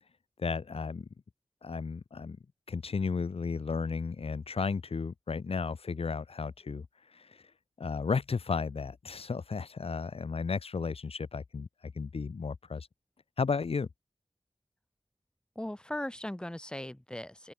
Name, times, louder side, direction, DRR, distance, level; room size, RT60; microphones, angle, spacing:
voice 1, 0.4-1.1 1.6-2.4 2.7-6.9 7.1-7.3 7.8-11.7 11.9-12.9 13.4-13.9, left 5 dB, 80° left, 1.1 m, -33 dB
voice 2, 15.6-17.5, left 1 dB, 10° left, 1.2 m, -38 dB
open air
wide cardioid pair, 65°, 10 cm